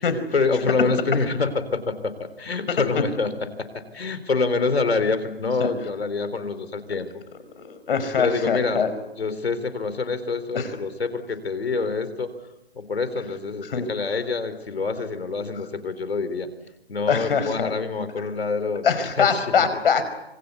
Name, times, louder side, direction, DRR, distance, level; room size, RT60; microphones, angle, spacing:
voice 1, 0.3-3.3 3.6-7.2 8.2-8.8 9.2-12.3 12.8-16.5 16.9-19.5, left 4 dB, 85° left, 12 dB, 3.9 m, -26 dB
voice 2, 7.6-8.9 10.5-10.7 13.6-14.2 17.1-17.7 18.8-20.0, left 6 dB, 65° left, 11 dB, 5.2 m, -23 dB
26.0 x 24.5 x 8.3 m, 0.96 s
hypercardioid pair, 140°, 30 cm